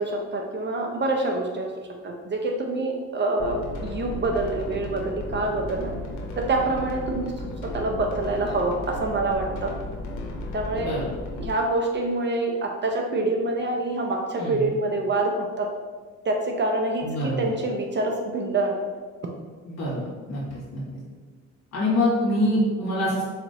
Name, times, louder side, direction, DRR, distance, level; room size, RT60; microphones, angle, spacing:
voice 1, 0.0-1.7 2.0-5.9 6.4-7.3 7.7-9.7 10.5-11.0 11.4-15.7 16.2-17.1 17.4-18.8, right 2 dB, 35° right, 1 dB, 0.5 m, -26 dB
sound 1, 3.4-11.5, left 1 dB, 75° left, 0.8 m, -34 dB
voice 2, 14.4-14.7 17.0-17.5 19.7-20.0 20.3-20.8 21.7-23.2, left 1 dB, 60° left, -7 dB, 1.5 m, -25 dB
4.2 x 2.9 x 2.7 m, 1.4 s
cardioid pair, 90°, 30 cm